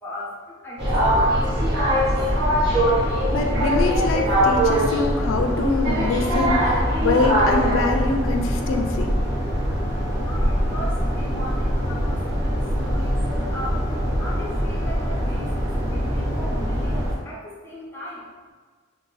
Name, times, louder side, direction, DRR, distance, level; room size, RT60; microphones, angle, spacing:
voice 1, 0.0-0.8 1.1-2.2 10.2-13.9 14.2-18.3, left 1 dB, 10° left, -6 dB, 0.7 m, -37 dB
sound 1, 0.8-17.1, equal, 60° right, 0.8 m, -22 dB
voice 2, 3.3-9.2, left 3 dB, 70° left, 4 dB, 0.3 m, -24 dB
2.5 x 2.2 x 3.9 m, 1.5 s
head